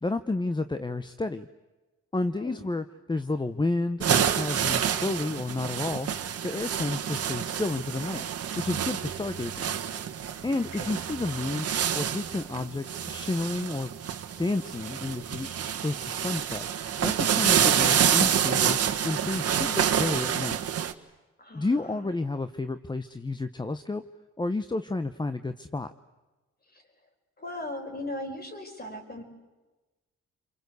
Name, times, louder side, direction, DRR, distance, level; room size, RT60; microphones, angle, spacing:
voice 1, 0.0-1.5 2.1-6.1 6.4-8.2 8.6-9.7 10.4-11.7 11.9-13.9 14.4-15.5 15.8-16.7 17.0-18.8 19.0-20.6 21.5-24.0 24.4-25.9, left 2 dB, 15° left, 10 dB, 0.9 m, -31 dB
voice 2, 2.3-2.7 10.5-11.0 21.4-22.1 26.7-26.8 27.4-29.2, left 1 dB, 30° left, 4 dB, 5.5 m, -38 dB
sound 1, 4.0-20.9, right 8 dB, 55° right, 1.6 m, -28 dB
28.5 x 24.0 x 8.2 m, 1.2 s
cardioid pair, 90°, 30 cm